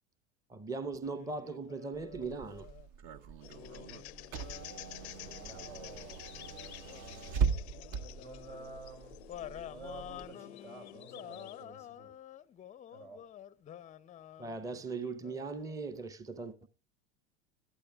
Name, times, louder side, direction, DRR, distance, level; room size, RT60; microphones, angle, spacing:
voice 1, 0.5-2.7 14.4-16.7, right 4 dB, 10° right, 0.7 m, -39 dB
sound 1, 1.1-2.9 3.5-8.7 9.3-16.1, left 10 dB, 20° left, 0.6 m, -50 dB
Car / Engine, 1.9-10.2, right 6 dB, 50° right, 0.9 m, -39 dB
sound 2, 3.4-11.6, left 16 dB, 75° left, 0.6 m, -50 dB
voice 2, 5.1-6.2 8.2-9.2 9.6-12.1 12.9-13.2, right 3 dB, 75° right, 4.7 m, -50 dB
21.5 x 12.0 x 2.3 m
hypercardioid pair, 85°, 34 cm